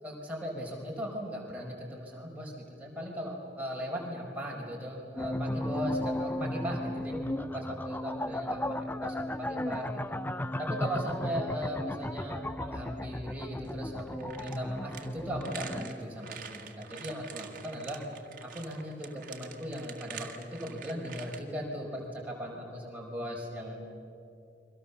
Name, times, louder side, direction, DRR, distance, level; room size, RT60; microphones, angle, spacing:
voice 1, 0.0-10.2 10.6-18.0 18.4-23.9, equal, 10° right, -2 dB, 4.9 m, -38 dB
sound 1, 5.2-16.0, left 1 dB, 10° left, 0.6 m, -35 dB
sound 2, 13.6-21.4, right 7 dB, 50° right, 1.9 m, -46 dB
30.0 x 23.5 x 7.1 m, 2.7 s
head